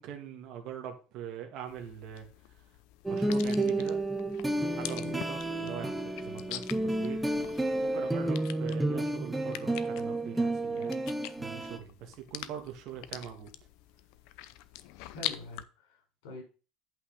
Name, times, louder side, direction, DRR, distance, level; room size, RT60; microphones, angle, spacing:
voice 1, 0.0-2.3 3.1-4.0 4.7-7.2 7.8-11.0 11.4-13.5, right 9 dB, 40° right, 3 dB, 1.9 m, -42 dB
sound 1, 1.7-15.6, left 14 dB, 60° left, 0.6 m, -44 dB
sound 2, 3.1-11.8, right 1 dB, 5° right, 0.6 m, -31 dB
voice 2, 15.1-16.4, left 2 dB, 85° left, 3 dB, 5.2 m, -45 dB
8.4 x 5.7 x 5.2 m, 0.35 s
cardioid pair, 180°, 0 cm